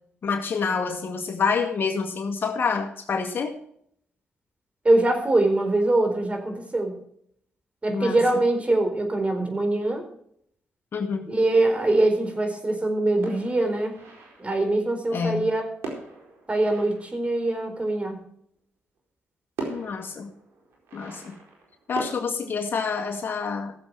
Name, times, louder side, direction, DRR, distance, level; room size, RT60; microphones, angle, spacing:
voice 1, 0.2-3.5 7.9-8.2 10.9-11.3 15.1-15.4 19.7-20.3 20.9-21.4 21.9-23.7, left 5 dB, 55° left, 5 dB, 2.0 m, -27 dB
voice 2, 4.8-6.9 7.8-10.0 11.3-14.0 14.4-15.6 16.5-18.2, right 2 dB, 30° right, 4 dB, 4.3 m, -23 dB
sound 1, 13.2-14.7 15.8-17.8 19.0-19.1 19.6-22.2, right 3 dB, 75° right, 4.4 m, -39 dB
16.5 x 7.6 x 4.7 m, 0.68 s
supercardioid pair, 50°, 4 cm